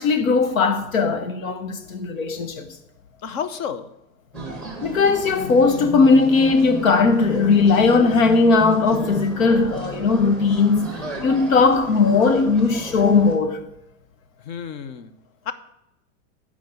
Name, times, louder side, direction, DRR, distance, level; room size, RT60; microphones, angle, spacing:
voice 1, 0.0-2.7 4.8-10.9 11.2-13.6, left 4 dB, 85° left, 1.5 m, -18 dB
voice 2, 3.2-3.9 14.4-15.1 15.5-15.6, left 7 dB, 35° left, 0.7 m, -30 dB
sound 1, 4.3-13.4, equal, ahead, 1.7 m, -33 dB
9.0 x 5.0 x 7.7 m
supercardioid pair, 155°, 39 cm